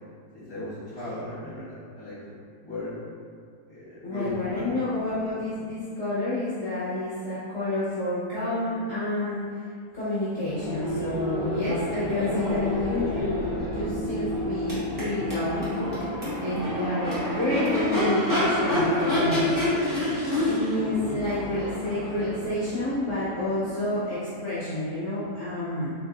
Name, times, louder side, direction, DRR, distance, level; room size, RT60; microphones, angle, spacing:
voice 1, 0.3-2.3 2.6-2.9 4.1-4.7, left 1 dB, 30° left, -15 dB, 1.5 m, -36 dB
voice 2, 4.0-9.5 9.9-15.6 15.9-16.1 16.4-19.6 20.4-25.9, left 1 dB, 50° left, -11 dB, 1.0 m, -29 dB
Crowd / Race car auto racing / Accelerating revving vroom, 10.4-24.2, left 1 dB, 15° right, 1.1 m, -28 dB
4.1 x 3.7 x 2.5 m, 2.2 s
omnidirectional pair, 1.7 m